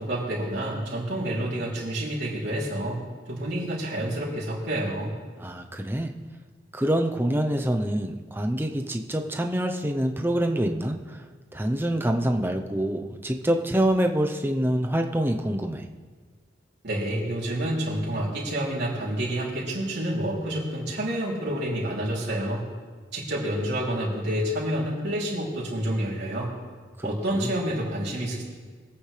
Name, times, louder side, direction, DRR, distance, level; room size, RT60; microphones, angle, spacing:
voice 1, 0.0-3.0 3.3-5.1 16.8-22.7 23.1-26.5 27.0-28.4, right 1 dB, 65° right, -6 dB, 3.2 m, -28 dB
voice 2, 5.4-6.1 6.7-11.2 11.5-15.8 27.0-27.5, right 1 dB, 10° right, 4 dB, 0.7 m, -26 dB
23.5 x 8.7 x 3.3 m, 1.5 s
head